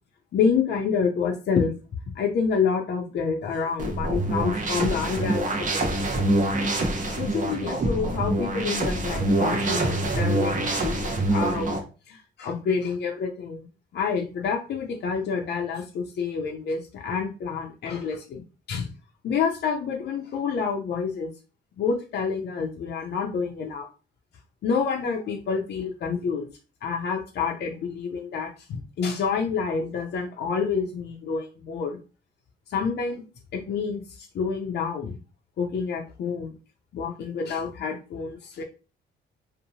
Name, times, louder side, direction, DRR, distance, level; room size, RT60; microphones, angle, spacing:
voice 1, 0.3-1.7 2.1-5.4 6.1-6.2 7.2-11.8 12.1-13.6 13.9-18.4 18.7-18.9 19.2-21.3 21.8-23.9 24.6-26.5 26.8-32.0 32.7-33.2 33.5-35.2 35.6-36.5 36.9-38.6, left 5 dB, 60° left, 1 dB, 0.5 m, -28 dB
sound 1, 3.8-11.8, right 1 dB, 40° right, 0.7 m, -25 dB
2.7 x 2.1 x 2.7 m, 0.33 s
cardioid pair, 90°, 20 cm